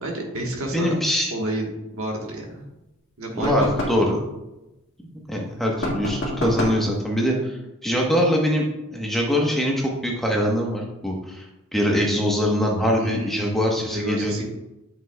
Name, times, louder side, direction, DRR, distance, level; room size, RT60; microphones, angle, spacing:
voice 1, 0.0-0.9 1.3-2.7 3.2-3.7 13.0-14.4, right 1 dB, 75° right, 0 dB, 1.2 m, -30 dB
voice 2, 0.7-1.3 3.4-4.2 5.3-8.6 8.9-11.5 11.7-14.4, equal, ahead, -2 dB, 0.9 m, -23 dB
sound 1, 3.4-4.1 5.8-6.9, left 1 dB, 55° left, 1.6 m, -27 dB
8.2 x 5.9 x 2.2 m, 0.97 s
head